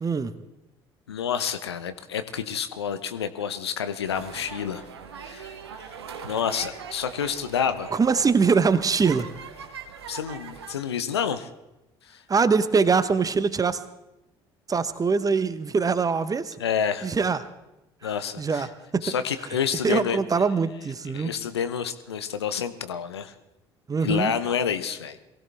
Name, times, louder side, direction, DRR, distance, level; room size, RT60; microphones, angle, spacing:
voice 1, 0.0-0.3 7.9-9.3 12.3-13.8 14.7-16.5 17.0-17.4 18.4-19.1 19.8-21.3 23.9-24.3, right 5 dB, 25° right, 13 dB, 1.1 m, -23 dB
voice 2, 1.1-4.8 5.2-5.6 6.3-7.9 10.1-11.5 12.1-12.2 16.6-17.1 18.0-18.7 19.0-20.2 21.1-23.3 24.0-25.2, left 7 dB, 80° left, 11 dB, 0.8 m, -28 dB
sound 1, 4.0-10.7, right 6 dB, 80° right, 1.2 m, -41 dB
22.5 x 16.5 x 3.5 m, 0.95 s
figure-of-eight pair, 55°, 13 cm